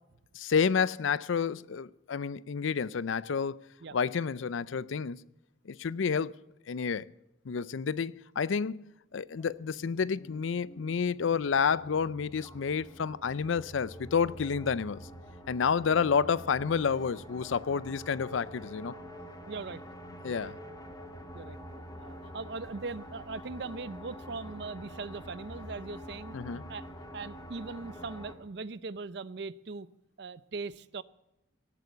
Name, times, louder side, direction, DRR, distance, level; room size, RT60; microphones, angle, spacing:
voice 1, 0.3-3.6 3.9-5.2 5.7-6.3 6.7-7.1 7.5-15.1 15.5-19.0 20.2-20.6 26.3-26.6, left 6 dB, 75° left, 0.5 m, -30 dB
sound 1, 9.4-28.3, equal, 20° left, 1.9 m, -47 dB
voice 2, 19.5-19.8 20.2-20.5 21.3-21.6 22.0-26.4 26.7-26.9 27.1-29.9 30.2-31.0, right 4 dB, 55° right, 0.5 m, -40 dB
17.5 x 8.4 x 8.1 m
head